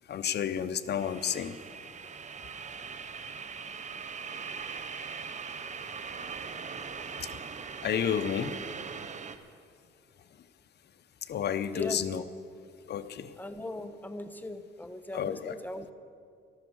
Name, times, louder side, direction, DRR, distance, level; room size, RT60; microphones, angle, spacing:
voice 1, 0.1-1.6 7.2-7.3 7.8-8.6 11.2-12.2 12.9-13.3 15.1-15.5, left 8 dB, 55° left, 12 dB, 0.8 m, -31 dB
sound 1, 1.0-9.4, right 5 dB, 35° right, 0.9 m, -40 dB
voice 2, 11.7-12.1 13.4-15.9, left 1 dB, 10° left, 9 dB, 1.0 m, -39 dB
13.0 x 11.5 x 7.9 m, 2.3 s
cardioid pair, 90°, 20 cm